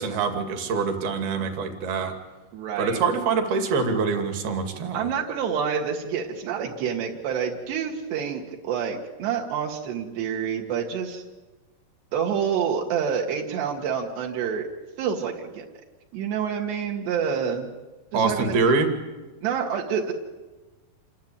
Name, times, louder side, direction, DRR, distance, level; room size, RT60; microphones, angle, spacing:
voice 1, 0.0-2.2 2.8-5.1 18.1-18.9, right 4 dB, 65° right, 6 dB, 4.3 m, -25 dB
voice 2, 2.5-3.0 4.9-11.2 12.1-14.7 15.0-15.7 16.1-17.7 18.1-18.6 19.4-20.1, right 7 dB, 80° right, 1 dB, 4.1 m, -28 dB
28.0 x 22.5 x 9.0 m, 1.2 s
omnidirectional pair, 4.8 m